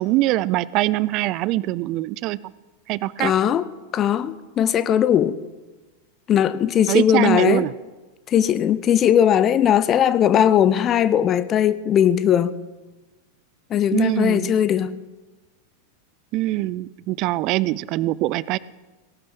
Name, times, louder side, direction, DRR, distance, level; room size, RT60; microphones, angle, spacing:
voice 1, 0.0-2.5 2.9-3.3 6.9-7.7 13.9-14.5 16.3-18.6, right 17 dB, 40° right, 0.5 m, -23 dB
voice 2, 3.2-3.6 3.9-5.4 6.3-7.7 8.3-12.6 13.7-15.0, left 9 dB, 30° left, 0.7 m, -19 dB
18.5 x 11.5 x 6.0 m
figure-of-eight pair, 90°, 0 cm